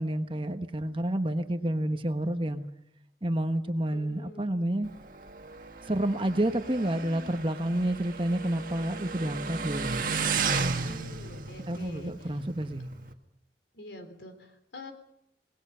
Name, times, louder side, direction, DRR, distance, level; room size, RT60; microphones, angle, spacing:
voice 1, 0.0-2.6 3.2-4.9 5.9-10.0 11.7-12.9, right 1 dB, 30° right, 8 dB, 1.2 m, -29 dB
voice 2, 3.9-4.5 10.8-12.3 13.7-14.9, left 1 dB, 80° left, 7 dB, 3.7 m, -46 dB
Motorcycle, 4.8-13.1, right 4 dB, 50° right, 1.8 m, -34 dB
28.0 x 19.5 x 5.7 m, 0.78 s
head